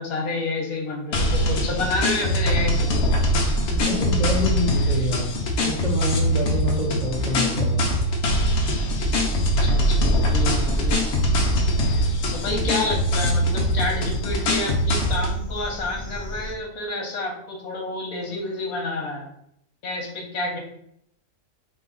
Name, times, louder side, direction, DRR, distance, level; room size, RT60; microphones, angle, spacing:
voice 1, 0.0-2.9 9.6-11.1 12.3-19.3 19.8-20.6, left 2 dB, 75° left, 1 dB, 1.4 m, -29 dB
sound 1, 1.1-15.4, equal, 55° left, 0.9 m, -22 dB
voice 2, 3.7-5.3 5.6-7.8, left 1 dB, 45° right, -3 dB, 0.6 m, -27 dB
sound 2, 8.7-16.5, right 1 dB, 5° left, 0.8 m, -29 dB
4.0 x 2.7 x 3.8 m, 0.73 s
omnidirectional pair, 1.5 m